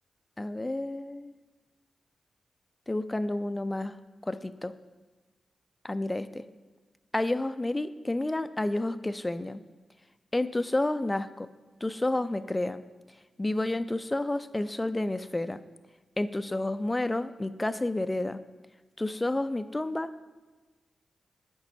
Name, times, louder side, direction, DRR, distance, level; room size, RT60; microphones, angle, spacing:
voice 1, 0.4-1.3 2.9-4.0 4.2-4.8 5.8-6.4 7.1-9.6 10.3-11.5 11.8-12.8 13.4-15.6 16.2-18.4 19.0-20.1, left 2 dB, 20° left, 13 dB, 0.4 m, -30 dB
8.1 x 5.4 x 4.0 m, 1.3 s
cardioid pair, 50°, 0 cm